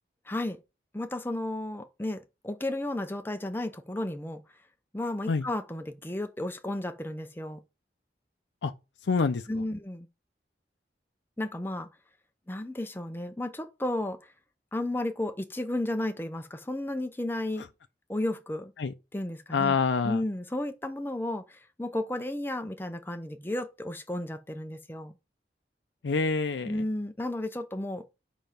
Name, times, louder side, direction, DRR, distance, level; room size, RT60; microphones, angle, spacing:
voice 1, 0.3-0.6 0.9-4.4 4.9-7.6 9.5-10.1 11.4-11.9 12.5-14.2 14.7-17.6 18.1-18.7 19.1-19.8 20.0-25.1 26.7-28.0, left 1 dB, 10° left, 0.7 m, -33 dB
voice 2, 9.1-9.4 18.8-18.9 19.5-20.2 26.0-26.8, left 4 dB, 90° left, 0.5 m, -26 dB
5.2 x 5.0 x 5.8 m
head